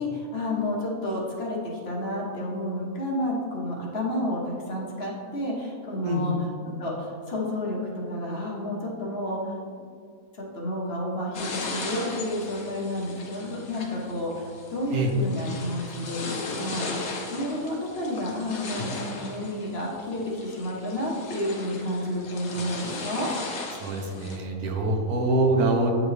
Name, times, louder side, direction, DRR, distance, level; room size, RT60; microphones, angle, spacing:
voice 1, 0.0-1.6 1.8-6.3 6.8-9.6 10.3-23.3, left 1 dB, 45° left, -3 dB, 1.1 m, -30 dB
voice 2, 6.0-6.4 14.9-15.1 23.8-25.9, right 2 dB, 80° right, 2 dB, 1.3 m, -24 dB
sound 1, 11.3-24.4, left 3 dB, 70° left, 1.3 m, -37 dB
8.6 x 3.7 x 3.2 m, 2.2 s
omnidirectional pair, 1.6 m